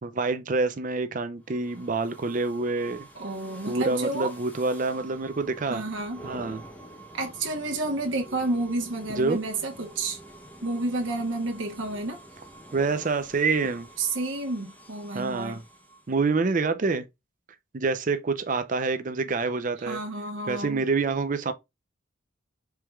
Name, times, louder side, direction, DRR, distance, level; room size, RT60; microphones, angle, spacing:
voice 1, 0.0-3.1 3.7-5.8 6.2-6.6 9.1-9.4 12.7-13.9 15.1-15.6 16.1-17.1 17.7-20.0 20.5-21.5, right 3 dB, 40° right, 0.5 m, -27 dB
sound 1, 1.4-16.2, right 1 dB, 10° left, 0.7 m, -47 dB
voice 2, 3.1-4.3 5.7-6.2 7.1-10.2 10.6-12.2 14.0-15.6 19.8-20.9, right 2 dB, 70° right, 0.9 m, -30 dB
4.6 x 3.3 x 2.3 m
head